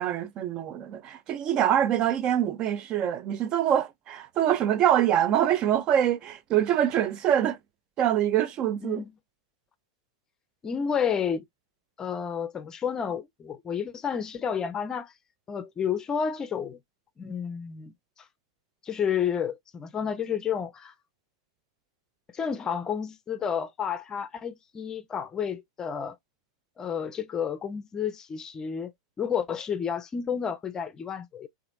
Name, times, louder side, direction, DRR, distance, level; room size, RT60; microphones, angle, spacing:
voice 1, 0.0-7.6 8.0-9.0, right 10 dB, 40° right, 0.5 m, -25 dB
voice 2, 10.6-11.4 12.0-15.1 15.5-16.8 17.2-17.9 18.8-20.9 22.3-26.2 26.8-28.9 29.2-31.5, left 7 dB, 25° left, 0.6 m, -30 dB
4.1 x 2.6 x 2.5 m
hypercardioid pair, 105°, 3 cm